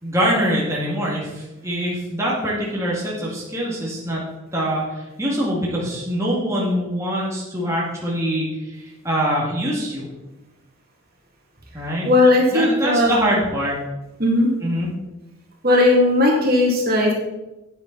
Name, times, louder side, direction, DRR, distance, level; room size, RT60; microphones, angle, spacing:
voice 1, 0.0-4.2 4.5-10.1 11.7-12.1 12.5-13.8 14.6-14.9, equal, 15° right, -5 dB, 2.0 m, -24 dB
voice 2, 12.0-13.1 14.2-14.5 15.6-17.1, left 2 dB, 45° right, -1 dB, 2.3 m, -16 dB
10.0 x 9.3 x 4.0 m, 1.0 s
head